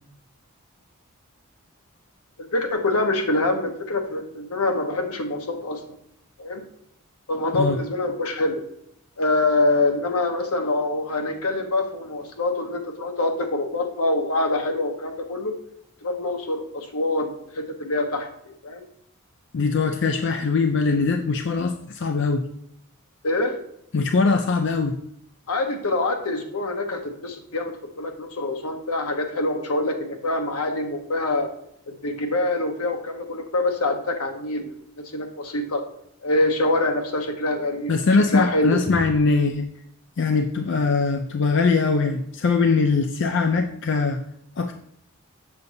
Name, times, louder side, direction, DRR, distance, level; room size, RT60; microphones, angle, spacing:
voice 1, 2.4-5.8 6.4-6.6 7.3-8.6 9.2-15.5 16.0-18.8 23.2-23.5 25.5-31.5 31.9-34.7 35.1-35.8 36.2-37.9 38.3-38.8, left 2 dB, 85° left, 4 dB, 1.1 m, -25 dB
voice 2, 19.5-22.5 23.9-25.0 37.9-39.7 40.2-44.2 44.6-44.7, left 4 dB, 55° left, 5 dB, 0.4 m, -21 dB
6.9 x 6.8 x 2.6 m, 0.73 s
head